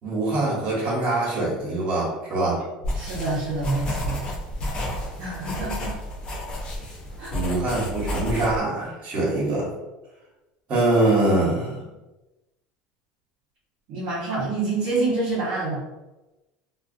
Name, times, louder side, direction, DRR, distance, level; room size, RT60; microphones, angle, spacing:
voice 1, 0.0-2.6 7.3-9.7 10.7-11.9, right 2 dB, 45° right, -5 dB, 1.3 m, -23 dB
sound 1, 2.8-8.6, equal, 30° left, 0.6 m, -31 dB
voice 2, 2.9-4.2 5.2-6.0 7.2-7.3 13.9-15.8, right 3 dB, 65° right, -9 dB, 0.9 m, -27 dB
2.4 x 2.3 x 2.5 m, 1.0 s
supercardioid pair, 120°, 3 cm